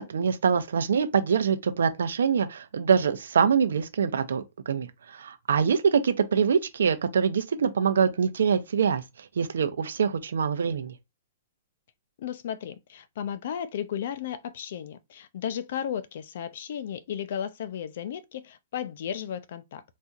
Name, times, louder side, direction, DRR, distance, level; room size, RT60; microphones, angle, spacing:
voice 1, 0.0-10.9, right 6 dB, 90° right, 0.7 m, -24 dB
voice 2, 12.2-19.8, left 9 dB, 55° left, 0.5 m, -34 dB
4.2 x 2.7 x 2.4 m
hypercardioid pair, 160°, 0 cm